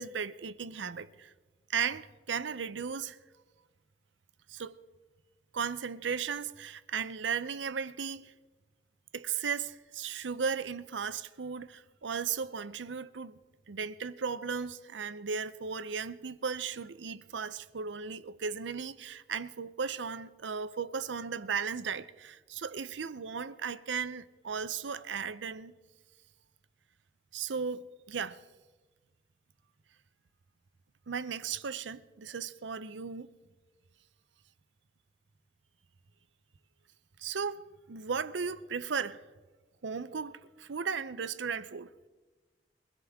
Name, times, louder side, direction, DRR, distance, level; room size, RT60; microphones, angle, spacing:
voice 1, 0.0-1.3 1.7-3.2 4.5-4.8 5.5-8.3 9.1-13.4 13.7-25.7 27.3-28.4 31.1-33.3 37.2-39.2 39.8-41.9, right 6 dB, 85° right, 0.6 m, -36 dB
23.0 x 16.5 x 3.6 m
head